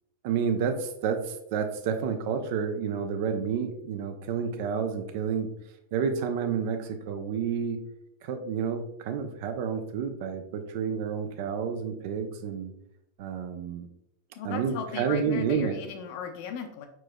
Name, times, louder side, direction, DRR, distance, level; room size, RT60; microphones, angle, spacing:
voice 1, 0.2-5.5 5.9-7.8 8.2-12.7 13.2-13.9 14.4-15.8, right 6 dB, 50° right, 7 dB, 0.5 m, -30 dB
voice 2, 14.4-16.9, left 7 dB, 45° left, 6 dB, 0.6 m, -37 dB
5.0 x 4.5 x 2.2 m, 0.80 s
figure-of-eight pair, 90°, 0 cm